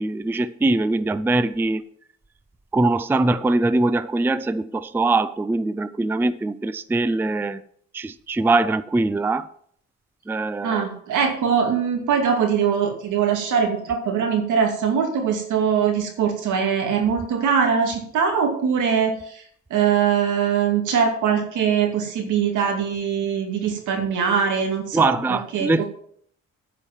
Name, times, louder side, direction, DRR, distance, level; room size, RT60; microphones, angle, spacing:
voice 1, 0.0-1.8 2.7-7.6 7.9-9.5 10.3-10.9 24.9-25.8, right 2 dB, 5° right, 0.4 m, -22 dB
voice 2, 10.6-19.4 19.7-25.8, right 7 dB, 80° right, 2.5 m, -22 dB
9.8 x 5.1 x 7.3 m
cardioid pair, 90°, 30 cm